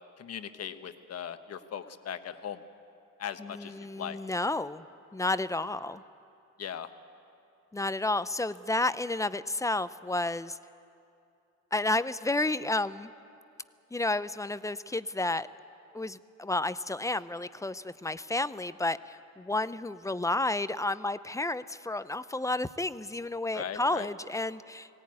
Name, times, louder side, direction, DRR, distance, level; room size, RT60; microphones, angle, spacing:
voice 1, 0.2-2.6 3.2-4.2 6.6-6.9 23.5-24.1, left 8 dB, 55° left, 9 dB, 1.2 m, -39 dB
voice 2, 3.4-4.8 5.1-6.0 7.7-10.6 11.7-13.1 13.9-15.5 15.9-24.9, left 2 dB, 10° left, 15 dB, 0.5 m, -31 dB
19.5 x 17.5 x 9.6 m, 2.6 s
cardioid pair, 90°, 30 cm